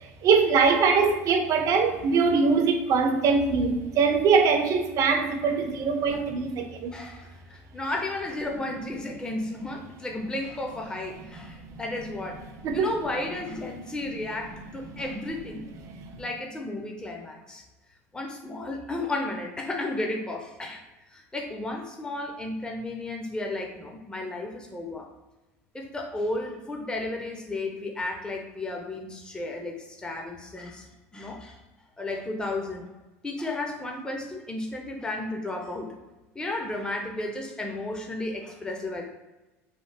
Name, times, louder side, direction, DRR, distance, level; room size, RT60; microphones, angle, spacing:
voice 1, 0.2-6.9 11.6-11.7 12.6-12.9 15.8-16.2, right 5 dB, 50° right, 0.5 m, -22 dB
voice 2, 6.9-12.5 12.7-15.7 16.2-17.6 18.1-20.8 21.1-25.1 25.7-30.8 31.1-31.6 32.0-32.9 33.2-35.9 36.3-39.0, left 2 dB, 10° left, 0.5 m, -33 dB
3.2 x 2.0 x 3.2 m
hypercardioid pair, 80°, 7 cm